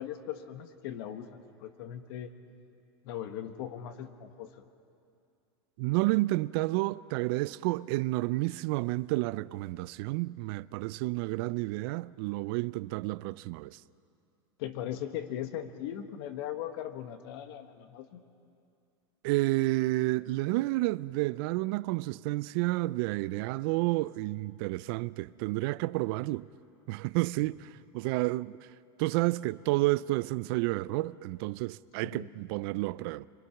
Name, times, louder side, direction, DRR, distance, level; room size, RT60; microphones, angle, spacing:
voice 1, 0.0-2.3 3.0-4.5 14.6-18.2 32.0-32.3, left 10 dB, 70° left, 1.6 m, -39 dB
voice 2, 5.8-13.8 19.2-26.5 26.9-28.6 29.0-33.3, right 20 dB, 65° right, 0.5 m, -30 dB
26.0 x 23.0 x 5.9 m
supercardioid pair, 120°, 13 cm